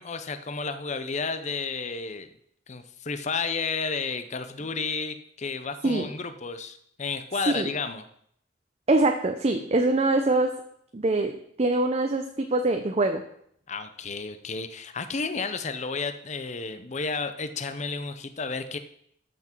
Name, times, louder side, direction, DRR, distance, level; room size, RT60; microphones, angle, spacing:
voice 1, 0.0-2.3 2.7-8.0 13.7-18.8, left 4 dB, 40° left, 10 dB, 0.7 m, -32 dB
voice 2, 8.9-10.5 10.9-11.3 11.6-13.2, right 2 dB, 35° right, 5 dB, 0.6 m, -23 dB
13.5 x 6.0 x 4.5 m, 0.69 s
head